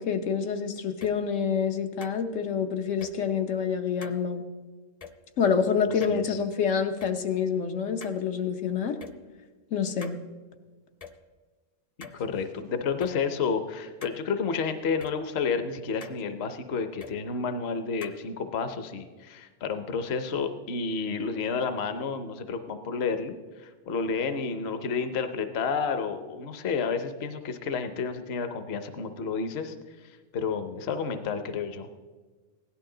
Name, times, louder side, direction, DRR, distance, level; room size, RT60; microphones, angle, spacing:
voice 1, 0.0-4.4 5.4-9.0 9.7-10.2, left 6 dB, 85° left, 5 dB, 1.2 m, -27 dB
sound 1, 1.0-1.1 2.0-2.2 3.0-3.1 4.0-4.2 5.0-5.1 6.0-6.5 7.0-7.1 8.0-8.2 9.0-9.1 10.0-10.2 11.0-11.1 12.0-12.2 13.0-13.1 14.0-14.2 15.0-15.1 16.0-16.2 17.0-17.1 18.0-18.2, left 6 dB, 40° left, 0.6 m, -44 dB
voice 2, 12.0-29.8 30.0-31.9, left 5 dB, 60° left, 9 dB, 1.0 m, -30 dB
16.5 x 11.5 x 3.8 m, 1.4 s
omnidirectional pair, 1.3 m